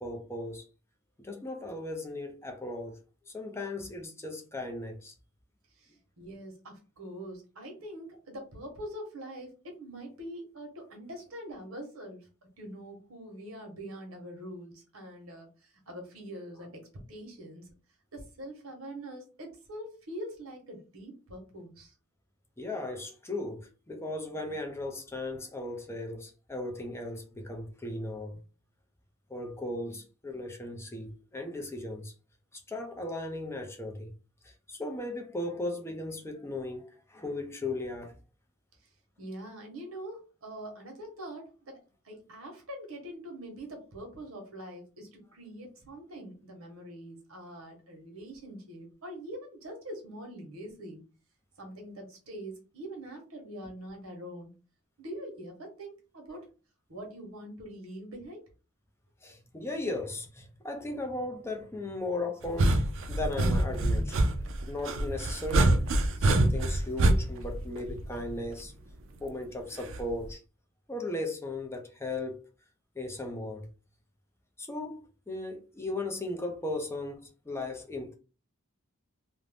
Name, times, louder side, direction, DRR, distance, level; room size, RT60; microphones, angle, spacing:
voice 1, 0.0-0.7 1.2-3.0 3.3-5.1 22.6-28.4 29.3-32.1 32.5-34.1 34.4-38.2 59.2-64.2 64.7-65.9 66.2-68.7 69.2-70.4 70.9-72.4 73.0-73.7 74.6-78.1, left 2 dB, 10° left, 0.4 m, -37 dB
voice 2, 5.7-12.3 12.6-16.8 17.1-17.7 18.1-21.9 39.2-41.8 42.0-51.0 51.6-54.5 55.0-56.5 56.9-58.4, right 1 dB, 85° right, 1.0 m, -44 dB
sound 1, 62.4-68.5 69.9-70.3, right 1 dB, 65° right, 0.4 m, -26 dB
2.5 x 2.1 x 3.3 m
head